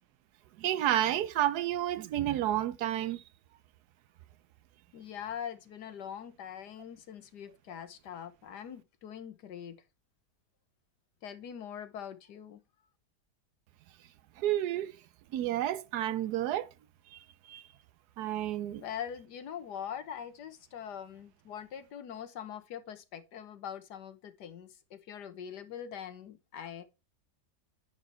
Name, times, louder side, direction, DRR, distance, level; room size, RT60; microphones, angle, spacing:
voice 1, 0.6-3.2 14.4-14.9 15.3-16.7 17.1-17.2 17.5-17.6 18.2-18.8, right 12 dB, 75° right, 1.1 m, -30 dB
voice 2, 4.9-9.8 11.2-12.6 18.8-26.8, left 9 dB, 80° left, 1.6 m, -43 dB
9.9 x 4.5 x 4.3 m
omnidirectional pair, 1.8 m